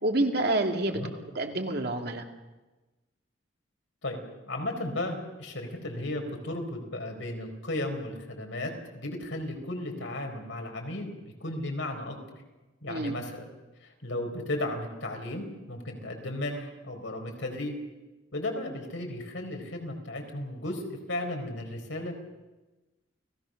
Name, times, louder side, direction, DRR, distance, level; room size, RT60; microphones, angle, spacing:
voice 1, 0.0-2.2 12.9-13.2, right 2 dB, 55° right, 3 dB, 2.3 m, -28 dB
voice 2, 4.5-12.4 12.8-13.4 13.8-17.7 18.3-22.1, left 1 dB, 75° left, 3 dB, 4.6 m, -35 dB
29.5 x 18.0 x 6.5 m, 1.1 s
head